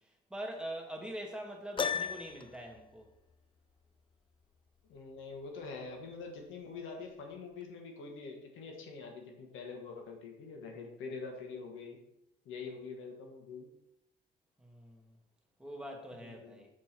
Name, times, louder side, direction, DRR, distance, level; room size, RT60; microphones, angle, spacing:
voice 1, 0.3-3.1 14.6-15.0 15.6-16.7, equal, 5° right, 1 dB, 1.6 m, -43 dB
Piano, 1.8-2.6, left 6 dB, 25° left, 0.4 m, -34 dB
voice 2, 4.9-12.0 12.4-13.7 16.2-16.7, left 4 dB, 85° left, 2 dB, 1.5 m, -45 dB
7.4 x 4.3 x 4.5 m, 0.82 s
cardioid pair, 90°, 20 cm